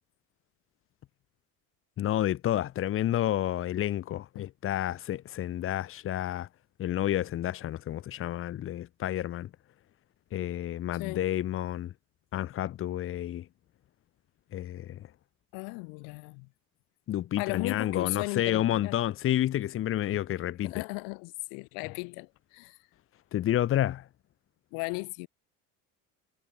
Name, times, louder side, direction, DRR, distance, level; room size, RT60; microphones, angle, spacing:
voice 1, 2.0-6.5 6.8-9.5 10.3-11.9 12.3-13.5 14.5-15.1 17.1-20.8 23.3-24.1, left 12 dB, 40° left, 3.4 m, -30 dB
voice 2, 10.9-11.3 15.5-16.5 17.4-19.0 20.6-22.8 24.7-25.3, left 38 dB, 75° left, 4.7 m, -36 dB
cardioid pair, 160°, 34 cm